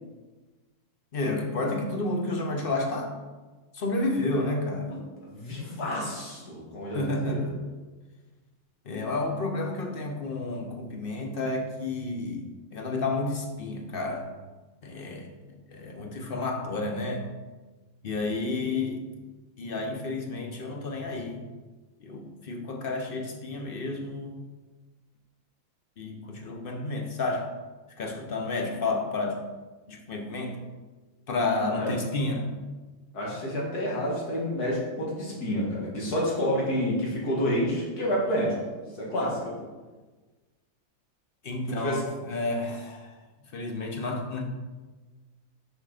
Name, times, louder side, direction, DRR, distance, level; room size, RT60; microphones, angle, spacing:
voice 1, 1.1-3.1 3.7-5.0 6.9-7.5 8.8-12.5 12.7-14.3 14.8-17.3 18.0-19.0 19.6-21.4 22.0-24.4 26.0-27.5 28.0-29.4 29.9-30.6 31.3-32.5 41.4-43.2 43.5-44.4, left 2 dB, 40° left, 3 dB, 1.0 m, -31 dB
voice 2, 5.3-7.5 31.6-31.9 33.1-38.6 39.0-39.5 41.7-42.0, equal, 75° left, -4 dB, 2.5 m, -29 dB
6.2 x 5.6 x 5.0 m, 1.3 s
omnidirectional pair, 1.7 m